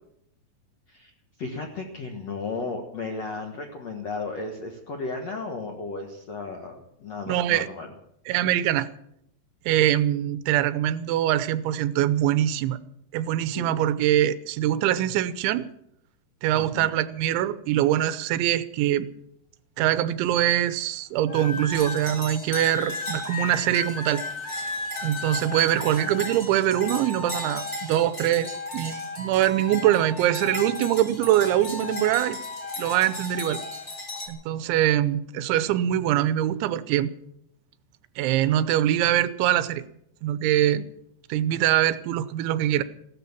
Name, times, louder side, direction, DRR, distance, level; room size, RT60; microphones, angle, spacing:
voice 1, 1.4-7.9 13.5-13.8 16.5-17.0 39.4-39.5, left 3 dB, 65° left, 3 dB, 1.6 m, -34 dB
voice 2, 7.3-7.7 8.3-8.9 9.7-12.8 13.1-15.7 16.4-19.1 19.8-24.2 25.0-32.4 32.8-33.6 34.3-37.1 38.2-39.8 40.2-40.8 41.3-42.8, right 12 dB, 85° right, 14 dB, 3.1 m, -23 dB
sound 1, 21.3-22.0 22.5-28.0 28.4-31.0 31.3-33.9 34.6-34.9, left 3 dB, 35° left, 2.1 m, -35 dB
sound 2, 21.7-34.3, left 1 dB, 20° left, 3.9 m, -38 dB
16.0 x 13.0 x 7.1 m, 0.76 s
omnidirectional pair, 5.3 m